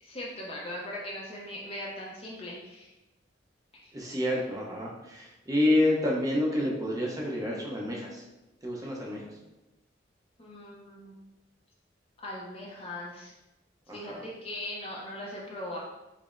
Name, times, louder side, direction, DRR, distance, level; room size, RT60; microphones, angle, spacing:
voice 1, 0.0-2.9 10.4-11.2 12.2-13.3 13.9-15.8, left 1 dB, 30° left, -4 dB, 0.6 m, -39 dB
voice 2, 3.9-8.2 8.6-9.3 13.9-14.2, left 1 dB, 20° right, -3 dB, 0.6 m, -28 dB
4.8 x 2.0 x 2.5 m, 1.0 s
head